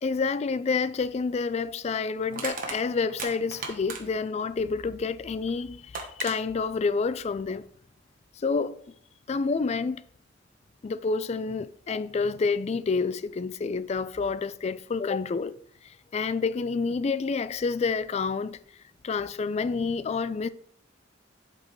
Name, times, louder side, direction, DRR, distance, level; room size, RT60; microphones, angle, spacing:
voice 1, 0.0-7.7 8.4-8.8 9.3-10.1 10.8-15.6 15.8-18.6 19.0-20.5, left 4 dB, 35° left, 0.3 m, -28 dB
Crushing, 0.9-1.1 2.3-4.3 5.5-5.6 5.9-6.4, right 4 dB, 50° right, 1.3 m, -36 dB
11.0 x 5.3 x 3.1 m
head